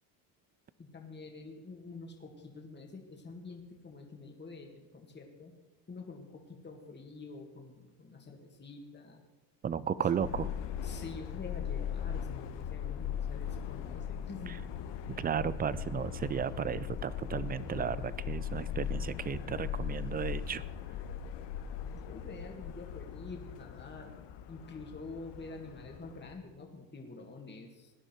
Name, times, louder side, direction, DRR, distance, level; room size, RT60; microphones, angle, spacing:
voice 1, 0.8-5.5 5.9-9.2 10.8-14.6 15.1-15.2 21.9-24.1 24.5-27.9, left 3 dB, 20° left, 2 dB, 2.0 m, -47 dB
voice 2, 9.6-10.5 14.5-14.6 15.1-20.6, right 8 dB, 20° right, 18 dB, 0.3 m, -34 dB
Subway metro underground, 10.2-26.3, left 9 dB, 60° left, 1.1 m, -39 dB
17.0 x 10.0 x 4.5 m, 1.1 s
supercardioid pair, 95°, 49 cm